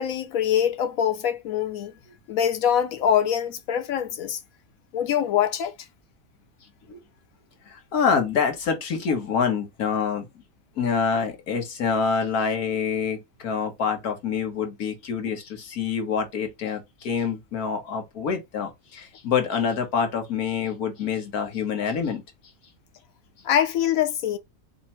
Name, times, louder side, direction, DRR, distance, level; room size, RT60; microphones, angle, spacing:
voice 1, 0.0-1.9 2.3-4.4 4.9-5.7 23.4-24.4, left 9 dB, 75° left, 1.2 m, -24 dB
voice 2, 7.6-10.3 10.8-22.2, left 6 dB, 90° left, 1.6 m, -26 dB
3.4 x 2.7 x 4.3 m
omnidirectional pair, 1.5 m